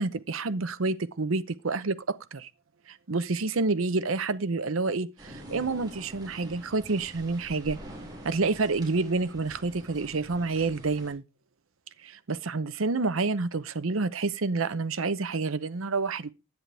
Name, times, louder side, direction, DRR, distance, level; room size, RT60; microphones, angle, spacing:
voice 1, 0.0-2.5 2.9-7.8 8.2-11.2 12.0-16.3, right 3 dB, 85° right, 0.8 m, -28 dB
sound 1, 5.2-11.1, equal, 20° right, 3.9 m, -46 dB
10.5 x 9.2 x 3.4 m
head